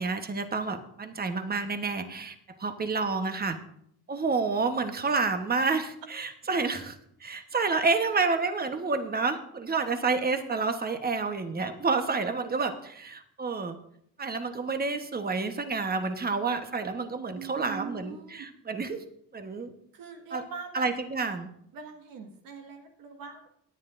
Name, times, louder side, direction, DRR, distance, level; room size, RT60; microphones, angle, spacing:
voice 1, 0.0-3.6 4.1-6.9 7.2-13.8 14.2-19.0 19.3-19.7 20.3-20.4 20.7-21.5, right 4 dB, 25° right, 7 dB, 1.1 m, -29 dB
voice 2, 17.3-18.5 19.9-20.9 21.7-23.5, right 6 dB, 90° right, 4 dB, 1.7 m, -42 dB
18.5 x 9.9 x 2.6 m, 0.70 s
cardioid pair, 105°, 34 cm